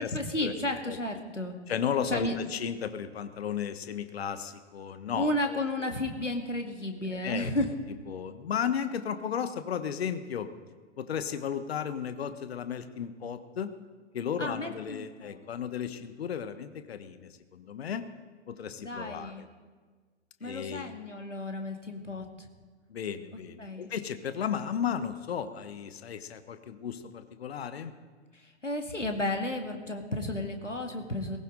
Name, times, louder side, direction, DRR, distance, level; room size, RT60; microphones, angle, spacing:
voice 1, 0.0-1.6 2.1-2.4 5.1-7.7 14.4-15.4 18.8-19.5 20.4-22.5 23.6-23.9 28.3-31.4, left 1 dB, 90° left, 4 dB, 2.1 m, -33 dB
voice 2, 1.7-5.6 7.1-7.5 8.1-10.5 11.0-13.7 14.1-18.0 18.5-19.5 20.4-20.9 22.9-27.9, left 8 dB, 55° left, 11 dB, 1.2 m, -34 dB
20.0 x 17.5 x 3.9 m, 1.5 s
figure-of-eight pair, 105°, 36 cm